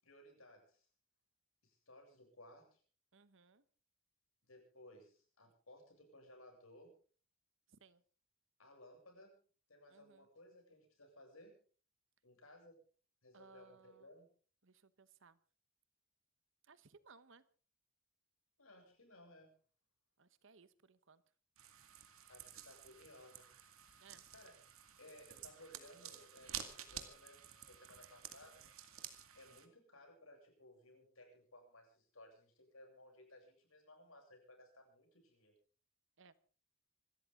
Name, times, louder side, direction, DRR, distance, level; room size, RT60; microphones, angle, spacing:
voice 1, 0.0-0.9 1.6-2.8 4.5-7.0 8.6-9.4 9.7-11.6 12.2-12.8 13.2-14.3 18.6-19.5 22.2-23.5 23.9-24.0 24.3-24.5 25.0-28.6 29.3-35.5, left 1 dB, 85° left, 2 dB, 7.7 m, -60 dB
voice 2, 3.1-3.6 7.7-8.0 9.9-10.3 13.3-14.1 14.6-15.4 16.6-17.4 20.2-21.2 24.0-24.2 36.2-36.3, right 5 dB, 65° right, 15 dB, 1.1 m, -63 dB
sound 1, 21.6-29.7, right 10 dB, 85° right, 2.2 m, -52 dB
27.0 x 13.5 x 3.7 m, 0.41 s
head